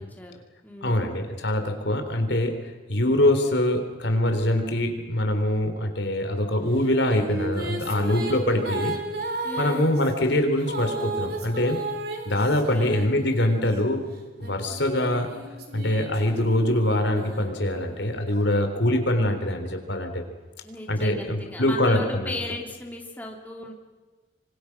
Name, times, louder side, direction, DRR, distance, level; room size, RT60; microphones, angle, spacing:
voice 1, 0.0-1.2 9.4-9.9 12.3-12.4 12.7-12.9 20.6-23.7, left 2 dB, 10° left, 0 dB, 3.1 m, -37 dB
voice 2, 0.8-8.9 9.6-11.8 12.3-14.1 14.4-15.3 15.7-20.2 20.9-22.3, left 1 dB, 70° left, 6 dB, 3.9 m, -24 dB
sound 1, 6.8-13.7 14.4-18.1, right 2 dB, 55° right, 3.9 m, -34 dB
26.0 x 25.0 x 6.1 m, 1.3 s
head